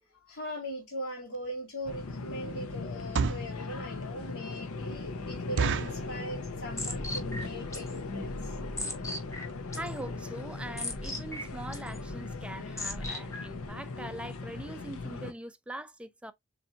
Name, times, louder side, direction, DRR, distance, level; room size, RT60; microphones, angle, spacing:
voice 1, 0.1-8.5, equal, 55° left, 1.8 m, -40 dB
sound 1, 1.3-1.5 2.0-2.2 2.9-3.6 4.1-4.2 4.5-4.6 5.0-5.1 5.6-6.1 6.7-7.0 7.2-7.3 7.5-7.8 8.4-8.5 8.7-8.8 9.2-9.3 9.5-9.6, right 5 dB, 60° right, 0.5 m, -30 dB
sound 2, 1.9-15.3, left 3 dB, 80° left, 0.7 m, -39 dB
sound 3, 5.7-13.7, left 2 dB, 15° left, 1.1 m, -40 dB
voice 2, 9.7-16.3, right 1 dB, 5° right, 0.4 m, -42 dB
6.9 x 2.7 x 2.7 m
head